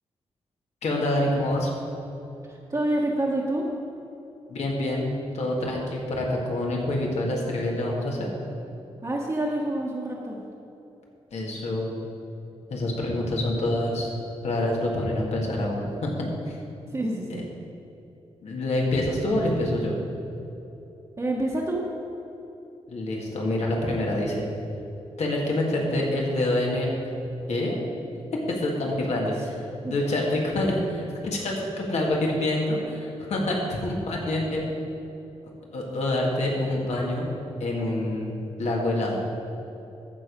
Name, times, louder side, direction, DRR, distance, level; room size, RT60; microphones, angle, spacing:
voice 1, 0.8-1.7 4.5-8.3 11.3-11.9 12.7-14.1 14.4-16.6 17.3-17.4 18.4-20.0 22.9-24.4 25.2-27.2 27.5-27.8 28.3-34.6 35.7-37.3 37.6-39.2, left 1 dB, 70° left, -2 dB, 2.0 m, -26 dB
voice 2, 2.5-3.6 9.0-10.4 16.9-17.5 21.2-21.8 29.8-29.9, right 1 dB, 30° right, -5 dB, 1.4 m, -27 dB
14.5 x 4.8 x 5.3 m, 3.0 s
cardioid pair, 65°, 12 cm